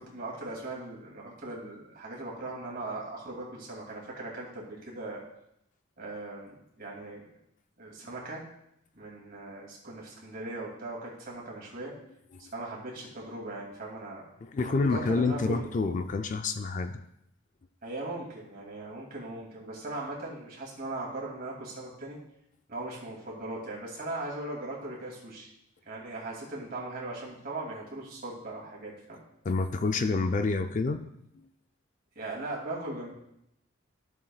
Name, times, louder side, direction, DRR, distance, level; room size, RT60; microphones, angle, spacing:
voice 1, 0.0-5.2 6.0-7.3 7.8-8.5 8.9-11.9 12.4-14.2 14.7-15.7 17.8-22.2 22.7-25.5 25.9-29.2 32.2-33.1, right 2 dB, 45° right, -3 dB, 2.5 m, -39 dB
voice 2, 14.4-17.0 29.4-31.0 31.3-31.5, left 3 dB, 40° left, 8 dB, 0.4 m, -28 dB
13.5 x 7.2 x 2.3 m, 0.79 s
head